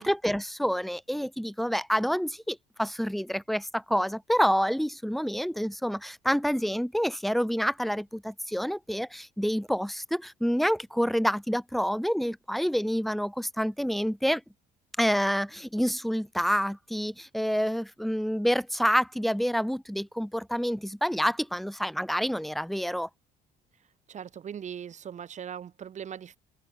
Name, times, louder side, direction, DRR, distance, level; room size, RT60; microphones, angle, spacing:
voice 1, 0.0-14.4 15.0-23.1, equal, ahead, 1.8 m, -28 dB
voice 2, 24.1-26.4, right 8 dB, 45° right, 2.2 m, -39 dB
open air
cardioid pair, 110°, 17 cm